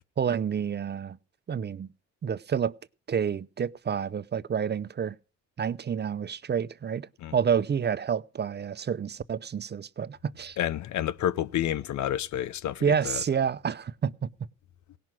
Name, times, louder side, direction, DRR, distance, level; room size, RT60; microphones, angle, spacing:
voice 1, 0.2-1.2 1.5-1.9 2.2-2.7 3.1-5.1 5.6-10.6 12.8-14.3, right 7 dB, 35° right, 0.6 m, -29 dB
voice 2, 10.6-13.2, left 11 dB, 70° left, 0.7 m, -29 dB
17.5 x 6.0 x 7.5 m
cardioid pair, 90°, 30 cm